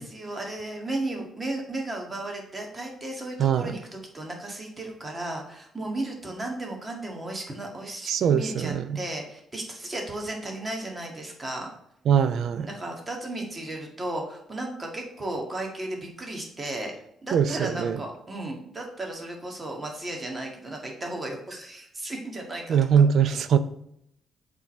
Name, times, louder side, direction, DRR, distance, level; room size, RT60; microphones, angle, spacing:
voice 1, 0.0-11.7 12.6-16.9 17.2-22.8, right 2 dB, 25° right, 1.8 m, -34 dB
voice 2, 3.4-3.7 8.1-9.0 12.1-12.7 17.3-18.0 22.7-23.6, right 7 dB, 70° right, 0.5 m, -22 dB
7.2 x 3.8 x 4.3 m
cardioid pair, 90°, 0 cm